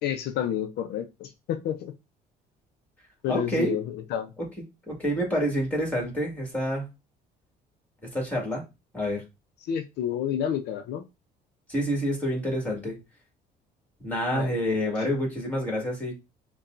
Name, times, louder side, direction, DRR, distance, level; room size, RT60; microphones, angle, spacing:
voice 1, 0.0-1.9 3.2-4.3 9.7-11.0 14.3-14.5 15.1-15.2, left 9 dB, 75° left, 0.5 m, -30 dB
voice 2, 3.3-3.8 4.9-6.9 8.1-8.6 8.9-9.2 11.7-13.0 14.0-16.1, equal, 10° left, 1.9 m, -28 dB
5.3 x 2.3 x 2.5 m
cardioid pair, 110°, 17 cm